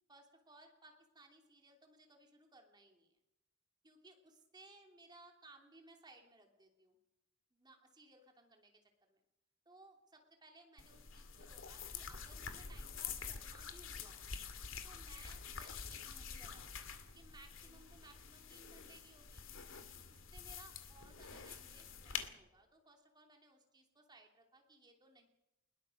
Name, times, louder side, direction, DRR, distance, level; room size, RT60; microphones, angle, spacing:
voice 1, 0.1-3.2 3.8-7.0 7.5-9.2 9.6-14.2 14.8-19.4 20.1-25.3, right 2 dB, 20° right, 3 dB, 2.9 m, -62 dB
sound 1, 10.8-22.3, left 6 dB, 75° left, 2.2 m, -47 dB
21.5 x 21.0 x 6.5 m, 0.89 s
head